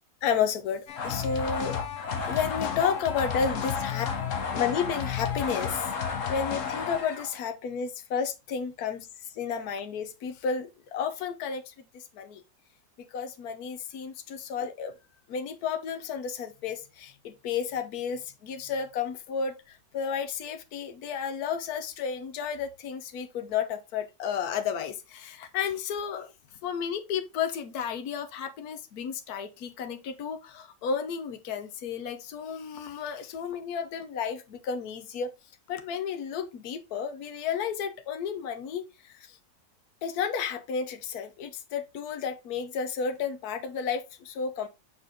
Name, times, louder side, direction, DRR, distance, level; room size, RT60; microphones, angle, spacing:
voice 1, 0.2-1.8 2.2-4.1 4.5-5.9 6.3-9.1 9.3-11.7 12.1-12.4 13.1-14.9 15.3-26.3 26.6-35.3 35.7-39.4 40.0-44.7, left 6 dB, 75° left, 1.4 m, -32 dB
sound 1, 0.9-7.4, left 6 dB, 60° left, 1.4 m, -32 dB
6.3 x 4.6 x 3.6 m
omnidirectional pair, 1.6 m